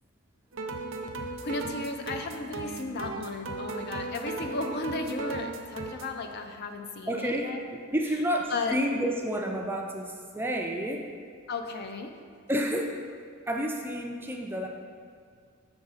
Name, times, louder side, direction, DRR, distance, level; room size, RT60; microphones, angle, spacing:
sound 1, 0.5-6.1, right 3 dB, 60° right, 0.6 m, -37 dB
voice 1, 1.4-7.6 8.5-8.8 11.5-12.1, left 3 dB, 50° left, 5 dB, 0.5 m, -34 dB
voice 2, 7.1-11.1 12.5-13.0 13.5-14.7, equal, 10° right, 1 dB, 0.4 m, -30 dB
6.9 x 5.3 x 3.9 m, 2.1 s
head